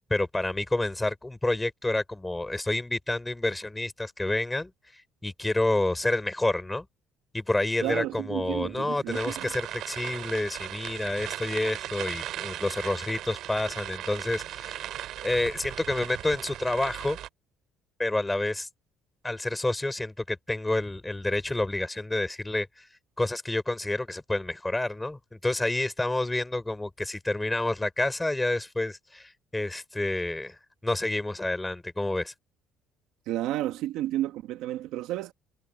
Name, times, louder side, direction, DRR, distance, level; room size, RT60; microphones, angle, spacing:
voice 1, 0.1-4.7 5.2-6.9 7.3-14.9 15.2-17.2 18.0-18.7 19.2-22.9 23.2-32.3, left 2 dB, 5° left, 5.7 m, -29 dB
voice 2, 7.8-9.5 33.3-35.3, right 14 dB, 65° right, 1.4 m, -31 dB
sound 1, 9.1-17.3, right 12 dB, 50° right, 5.1 m, -37 dB
cardioid pair, 180°, 0 cm